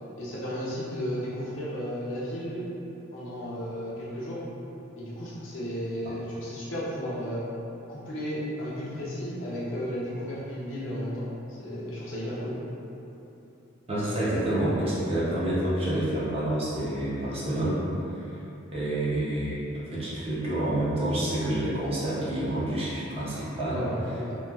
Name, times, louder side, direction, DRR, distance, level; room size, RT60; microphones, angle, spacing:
voice 1, 0.2-2.7 3.1-4.4 5.0-7.5 7.9-12.6 23.6-24.4, equal, 70° left, -8 dB, 0.7 m, -34 dB
voice 2, 13.9-17.8 18.7-23.8, right 1 dB, 30° right, -9 dB, 0.6 m, -28 dB
2.9 x 2.2 x 2.3 m, 2.9 s
head